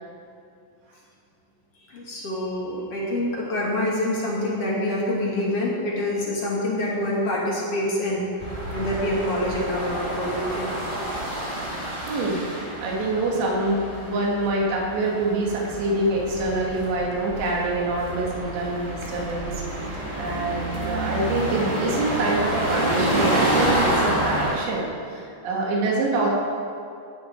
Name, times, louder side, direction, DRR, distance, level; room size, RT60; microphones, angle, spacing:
voice 1, 1.9-10.7, left 1 dB, 40° left, -4 dB, 3.0 m, -26 dB
sound 1, 8.4-24.6, right 1 dB, 15° right, 1.6 m, -28 dB
voice 2, 12.1-19.5 19.8-26.3, right 2 dB, 80° right, -3 dB, 4.4 m, -26 dB
18.0 x 11.5 x 4.7 m, 2.4 s
omnidirectional pair, 4.9 m